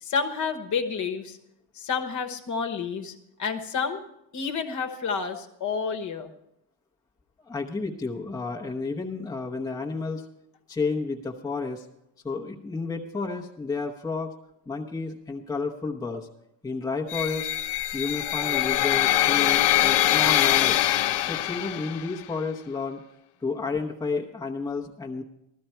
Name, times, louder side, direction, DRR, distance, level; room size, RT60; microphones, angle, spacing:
voice 1, 0.0-1.4 1.7-4.0 4.3-6.3, left 5 dB, 40° left, 7 dB, 1.2 m, -30 dB
voice 2, 7.4-10.3 10.7-11.8 12.2-14.3 14.7-16.3 16.6-17.5 17.9-20.8 21.3-23.0 23.4-25.2, left 4 dB, 10° left, 0 dB, 0.8 m, -31 dB
sound 1, 17.1-22.2, left 14 dB, 65° left, 0.7 m, -23 dB
15.5 x 13.0 x 4.5 m, 0.81 s
cardioid pair, 170°, 46 cm